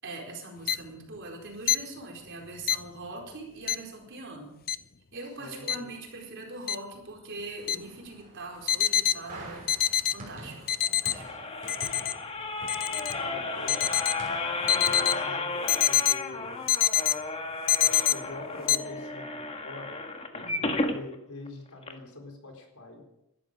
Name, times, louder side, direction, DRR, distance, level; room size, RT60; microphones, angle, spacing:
voice 1, 0.0-4.6 5.1-11.3 20.4-20.8, right 2 dB, 55° right, 0 dB, 4.6 m, -42 dB
sound 1, 0.7-0.8 1.7-1.8 2.7-2.8 3.7-3.8 4.7-4.8 5.7-5.8 6.7-6.8 7.7-7.8 8.7-9.1 9.7-10.1 10.7-11.1 11.7-12.1 12.7-13.1 13.7-14.1 14.7-15.1 15.7-16.1 16.7-17.1 17.7-18.1 18.7-18.8, left 11 dB, 45° left, 0.6 m, -24 dB
voice 2, 5.4-5.9 13.3-13.8 14.6-16.7 17.8-20.0 20.3-23.1, left 2 dB, 80° left, 3 dB, 4.2 m, -44 dB
sound 2, 7.6-15.1, right 1 dB, 35° right, 6.2 m, -47 dB
sound 3, 10.8-21.0 21.5-21.6 21.8-21.9, left 3 dB, 25° left, 1.7 m, -33 dB
19.5 x 12.5 x 5.2 m, 0.86 s
head